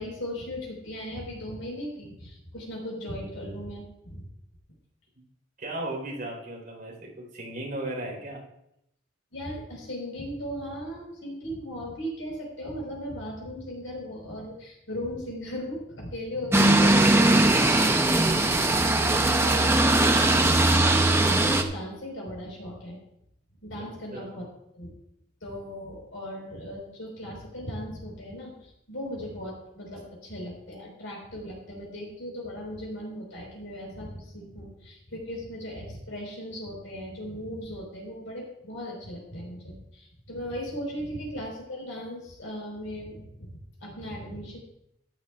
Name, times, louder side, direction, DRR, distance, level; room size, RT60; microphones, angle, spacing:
voice 1, 0.0-4.2 9.3-20.6 21.2-23.0 23.6-24.5 24.7-24.9 25.4-43.5 43.8-44.6, equal, 75° left, -1 dB, 4.8 m, -37 dB
voice 2, 5.6-8.4 24.1-24.4, right 1 dB, 45° right, -2 dB, 4.2 m, -36 dB
sound 1, 16.5-21.6, right 2 dB, 10° right, 0.7 m, -20 dB
14.0 x 12.0 x 2.5 m, 0.80 s
head